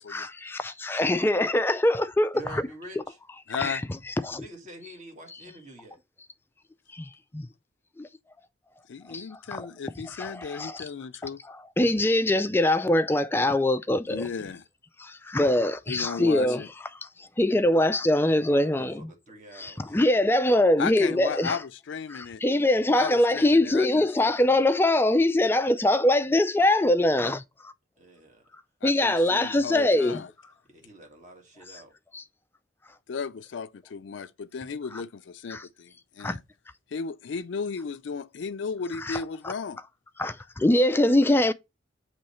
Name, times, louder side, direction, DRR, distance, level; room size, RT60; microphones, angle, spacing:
voice 1, 0.1-2.6 3.6-3.8 4.2-4.4 6.9-7.5 8.0-8.1 9.1-9.3 9.5-9.7 10.2-10.8 11.8-14.2 15.0-16.6 17.2-19.1 19.6-21.6 22.1-27.7 28.8-30.2 32.1-32.2 35.5-35.6 36.2-36.4 39.0-39.2 40.2-41.5, left 1 dB, 10° left, 0.3 m, -23 dB
voice 2, 2.3-3.2 4.3-6.0 18.5-19.9 28.0-28.4 30.7-31.9, right 1 dB, 40° right, 1.6 m, -46 dB
voice 3, 3.5-3.8 8.9-11.4 14.1-14.6 15.9-16.7 20.8-22.4 22.9-24.3 28.8-30.3 33.1-36.4 36.9-39.8, left 5 dB, 80° left, 0.4 m, -35 dB
7.6 x 3.1 x 4.2 m
head